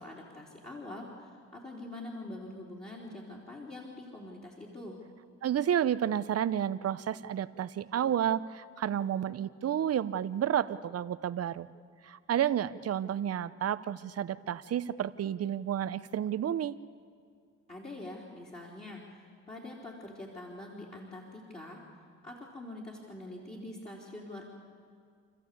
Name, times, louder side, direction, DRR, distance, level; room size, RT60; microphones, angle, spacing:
voice 1, 0.0-5.0 17.7-21.8 22.2-24.4, left 1 dB, 20° left, -5 dB, 4.0 m, -44 dB
voice 2, 5.4-11.7 12.0-16.8, right 10 dB, 55° right, 14 dB, 0.9 m, -31 dB
28.0 x 14.5 x 8.6 m, 2.2 s
cardioid pair, 90°, 30 cm